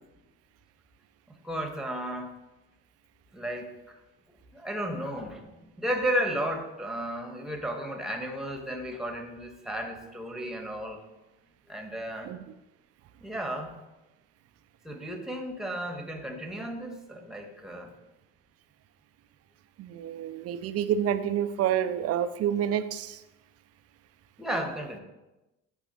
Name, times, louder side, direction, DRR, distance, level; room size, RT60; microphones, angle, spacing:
voice 1, 1.4-2.3 3.3-4.0 4.5-11.0 11.7-12.3 13.2-13.7 14.8-17.9 24.4-25.0, equal, ahead, 3 dB, 1.3 m, -33 dB
voice 2, 19.8-23.2, right 9 dB, 45° right, 12 dB, 0.6 m, -28 dB
10.5 x 3.9 x 3.1 m, 1.0 s
supercardioid pair, 80°, 33 cm